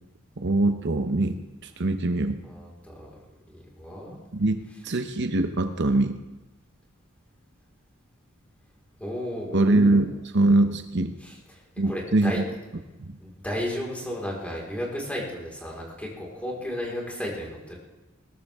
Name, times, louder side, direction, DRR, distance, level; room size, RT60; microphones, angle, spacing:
voice 1, 0.4-1.4 1.6-2.4 4.3-6.2 9.5-11.2 11.8-12.4 13.1-13.2, right 2 dB, 55° right, 7 dB, 0.9 m, -23 dB
voice 2, 2.4-3.1 3.5-4.2 9.0-9.9 11.2-12.4 13.2-17.8, equal, 5° left, -3 dB, 4.7 m, -34 dB
21.5 x 17.0 x 3.7 m, 1.1 s
head